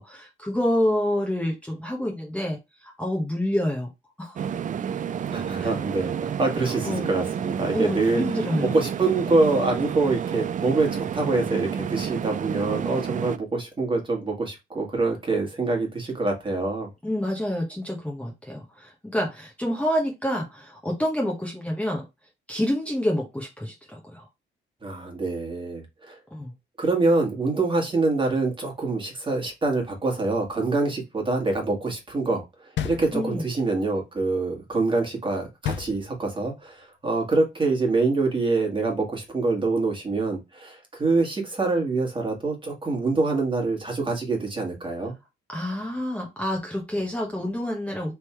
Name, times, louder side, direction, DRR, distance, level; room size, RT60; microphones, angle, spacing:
voice 1, 0.0-3.9 4.2-4.4 5.6-5.7 6.8-7.1 7.7-8.7 17.0-22.0 22.5-24.3 26.3-26.5 33.1-33.4 45.5-48.1, left 1 dB, 5° left, -1 dB, 1.1 m, -28 dB
sound 1, 4.4-13.4, right 8 dB, 40° right, 0.4 m, -30 dB
voice 2, 5.3-8.2 8.6-16.9 24.8-26.2 26.8-32.4 32.8-45.1, right 3 dB, 25° right, 1 dB, 1.9 m, -25 dB
sound 2, 32.8-33.7 35.6-36.6, left 9 dB, 70° left, 0.6 m, -32 dB
3.6 x 3.0 x 4.5 m, 0.23 s
cardioid pair, 90°, 20 cm